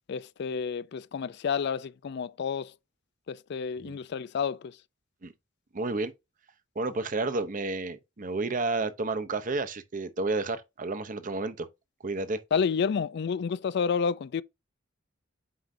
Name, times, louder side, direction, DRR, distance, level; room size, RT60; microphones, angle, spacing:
voice 1, 0.1-2.7 3.3-4.7 12.5-14.4, left 6 dB, 60° left, 0.4 m, -30 dB
voice 2, 5.7-6.1 6.8-11.7 12.0-12.4, right 3 dB, 45° right, 0.7 m, -31 dB
7.8 x 5.1 x 2.6 m
head